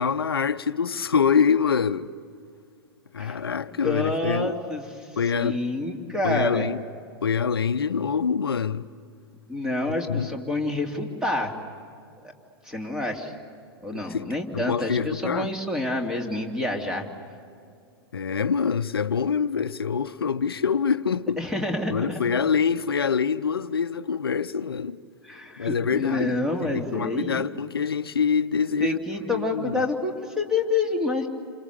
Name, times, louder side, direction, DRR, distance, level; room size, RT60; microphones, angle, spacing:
voice 1, 0.0-2.1 3.1-4.6 5.2-5.6 6.2-6.8 7.2-8.9 10.1-10.3 13.9-15.5 18.1-21.4 21.9-25.0 25.6-29.9, left 6 dB, 75° left, 0.7 m, -25 dB
voice 2, 3.8-5.1 5.3-6.7 9.5-11.5 12.6-13.3 13.8-17.1 21.4-22.2 25.2-27.4 28.8-31.3, left 2 dB, 5° right, 2.9 m, -28 dB
28.5 x 28.0 x 6.8 m
figure-of-eight pair, 100°, 12 cm